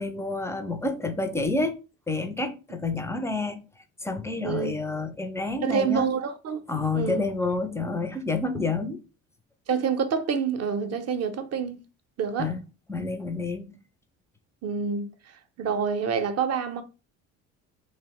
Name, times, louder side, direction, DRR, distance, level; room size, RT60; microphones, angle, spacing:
voice 1, 0.0-1.7 2.1-3.6 4.0-6.1 6.7-9.0 12.4-12.6 12.9-13.8, left 3 dB, 10° left, 0.3 m, -29 dB
voice 2, 5.6-6.6 6.9-7.3 9.7-11.8 12.2-12.5 14.6-15.1 15.6-16.8, right 6 dB, 40° right, 0.5 m, -27 dB
2.8 x 2.0 x 2.9 m
hypercardioid pair, 55°, 40 cm